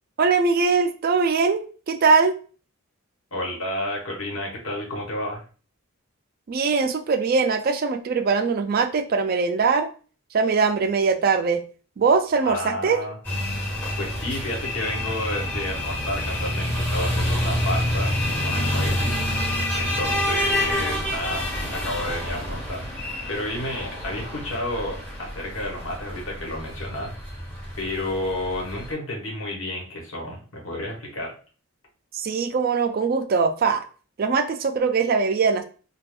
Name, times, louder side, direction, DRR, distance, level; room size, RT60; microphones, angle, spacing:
voice 1, 0.2-2.3 6.5-9.9 10.3-11.6 12.0-13.0 32.1-33.8 34.2-35.6, right 4 dB, 45° right, 7 dB, 0.3 m, -21 dB
voice 2, 3.3-5.4 12.4-13.1 14.0-27.1 27.8-31.3, left 1 dB, 70° left, -1 dB, 1.1 m, -31 dB
sound 1, 13.2-28.9, left 1 dB, 10° left, 1.4 m, -28 dB
2.4 x 2.2 x 3.5 m, 0.38 s
head